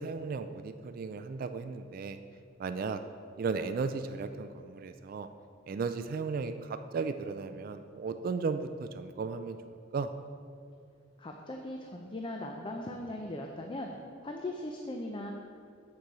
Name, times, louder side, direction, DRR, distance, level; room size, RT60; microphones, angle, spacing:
voice 1, 0.0-2.2 2.6-3.0 3.4-5.3 5.7-10.1, right 4 dB, 50° right, 9 dB, 0.3 m, -35 dB
voice 2, 11.2-13.9 14.2-15.3, left 1 dB, 25° left, 2 dB, 0.5 m, -39 dB
7.9 x 6.7 x 4.8 m, 2.3 s
head